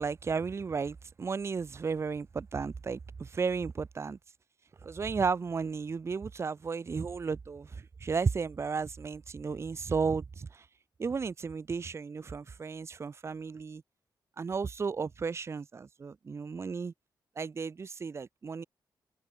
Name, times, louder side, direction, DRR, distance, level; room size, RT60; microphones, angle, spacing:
voice 1, 0.0-4.2 4.8-10.7 11.0-13.8 14.4-16.9 17.4-18.6, right 5 dB, 35° right, 0.6 m, -34 dB
open air
cardioid pair, 100°, 8 cm